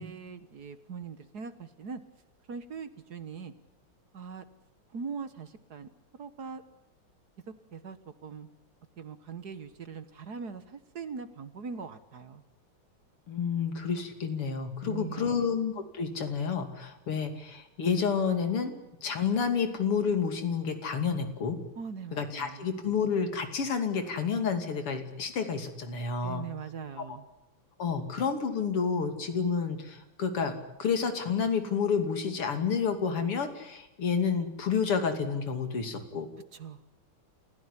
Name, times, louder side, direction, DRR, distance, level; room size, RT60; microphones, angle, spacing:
voice 1, 0.0-2.0 2.5-3.5 4.1-4.4 4.9-5.9 6.2-6.6 7.7-8.5 9.0-12.4 14.8-15.5 21.8-22.6 26.2-27.3 36.5-36.8, right 5 dB, 50° right, 12 dB, 1.7 m, -41 dB
voice 2, 13.3-18.7 19.0-21.6 22.1-26.5 27.1-27.2 27.8-36.3, left 6 dB, 85° left, 7 dB, 3.6 m, -30 dB
28.5 x 16.0 x 10.0 m, 0.94 s
omnidirectional pair, 2.4 m